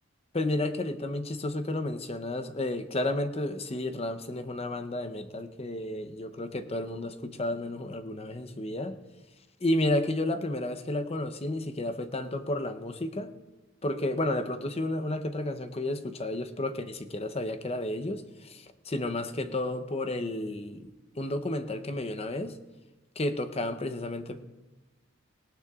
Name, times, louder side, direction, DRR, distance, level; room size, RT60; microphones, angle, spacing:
voice 1, 0.3-9.0 9.6-13.3 13.8-20.9 21.2-22.6 23.2-24.4, left 1 dB, 30° left, 9 dB, 0.7 m, -32 dB
18.5 x 18.0 x 2.4 m, 1.1 s
head